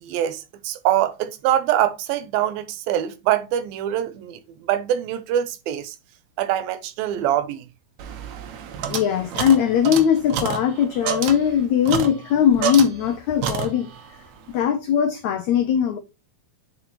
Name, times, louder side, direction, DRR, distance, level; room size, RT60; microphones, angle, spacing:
voice 1, 0.0-6.0 6.4-7.6, right 11 dB, 85° right, 2.6 m, -24 dB
sound 1, 8.0-13.2 13.4-14.1, right 7 dB, 65° right, 1.9 m, -29 dB
voice 2, 8.9-13.9 14.5-16.0, left 8 dB, 90° left, 1.6 m, -20 dB
8.6 x 5.3 x 2.9 m
omnidirectional pair, 4.2 m